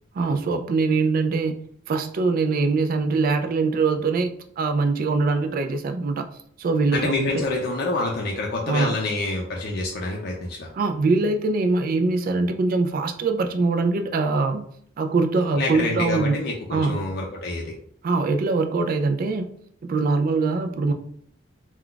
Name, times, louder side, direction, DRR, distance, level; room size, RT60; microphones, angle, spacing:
voice 1, 0.2-1.5 1.9-4.3 4.6-6.3 6.6-7.4 8.7-8.9 10.8-14.7 15.0-16.4 16.7-17.1 18.0-19.5 19.8-20.9, right 3 dB, 45° right, 7 dB, 0.3 m, -23 dB
voice 2, 6.9-10.7 15.5-17.7, left 2 dB, 55° left, -1 dB, 0.4 m, -27 dB
2.3 x 2.2 x 3.7 m, 0.65 s
head